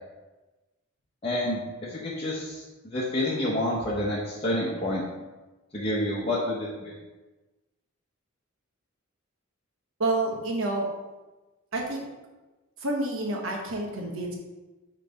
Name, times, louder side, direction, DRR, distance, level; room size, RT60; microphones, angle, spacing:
voice 1, 1.2-1.6 1.9-2.6 2.8-5.0 5.7-6.9, left 1 dB, 30° left, -7 dB, 0.9 m, -28 dB
voice 2, 10.0-10.9 11.7-12.1 12.8-14.3, right 2 dB, 70° right, 0 dB, 1.2 m, -28 dB
5.8 x 3.2 x 5.1 m, 1.2 s
head